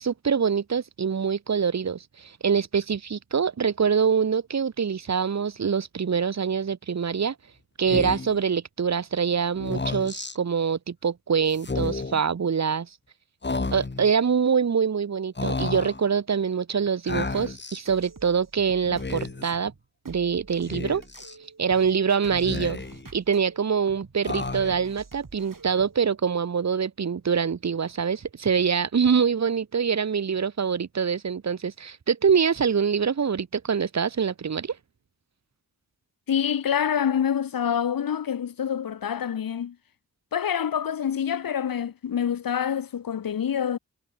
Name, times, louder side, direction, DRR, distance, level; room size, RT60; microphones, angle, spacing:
voice 1, 0.0-7.3 7.8-12.9 13.7-19.7 20.1-21.0 21.6-22.8 23.1-34.8, right 6 dB, 55° right, 0.8 m, -25 dB
Speech, 7.9-8.4 9.6-10.3 11.5-12.2 13.4-14.1 15.3-16.0 17.1-17.8 18.8-19.5 20.7-21.3 22.3-23.1 24.2-24.9, left 3 dB, 30° left, 1.2 m, -32 dB
sound 1, 17.3-26.0, right 4 dB, 70° right, 7.2 m, -47 dB
voice 2, 36.3-39.8 40.3-43.8, left 8 dB, 85° left, 0.7 m, -26 dB
wide cardioid pair, 45°, 33 cm